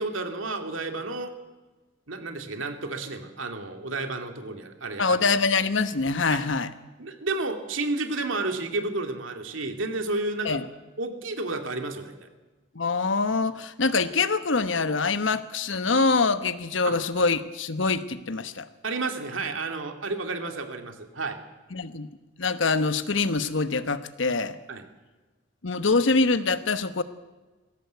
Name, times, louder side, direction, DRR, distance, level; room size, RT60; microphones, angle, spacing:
voice 1, 0.0-1.3 2.1-5.0 7.0-10.6 11.0-12.3 16.9-17.0 18.8-21.4 24.7-24.8, right 3 dB, 80° right, 6 dB, 2.5 m, -31 dB
voice 2, 5.0-6.7 10.4-10.7 12.7-18.7 21.7-22.1 22.4-24.6 25.6-27.0, left 4 dB, 70° left, 12 dB, 1.1 m, -24 dB
21.0 x 16.5 x 8.2 m, 1.2 s
head